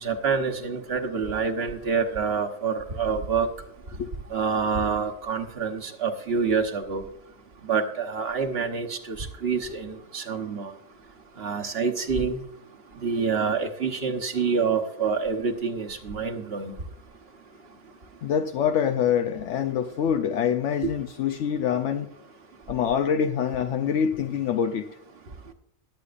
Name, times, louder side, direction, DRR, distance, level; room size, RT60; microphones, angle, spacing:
voice 1, 0.0-3.5 4.3-7.0 7.7-10.7 11.4-12.4 13.0-16.7, right 5 dB, 55° right, 1.3 m, -27 dB
voice 2, 18.2-22.1 22.7-24.9, left 8 dB, 75° left, 0.9 m, -25 dB
21.0 x 8.2 x 2.5 m
omnidirectional pair, 1.3 m